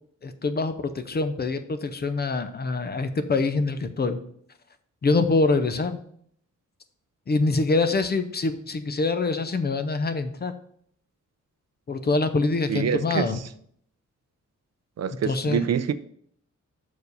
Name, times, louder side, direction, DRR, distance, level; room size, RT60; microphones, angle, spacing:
voice 1, 0.2-4.2 5.0-6.0 7.3-10.5 11.9-13.4 15.2-15.6, left 3 dB, 30° left, 0.5 m, -25 dB
voice 2, 12.7-13.4 15.0-15.9, right 8 dB, 55° right, 0.4 m, -26 dB
6.4 x 4.8 x 5.4 m
wide cardioid pair, 180°, 31 cm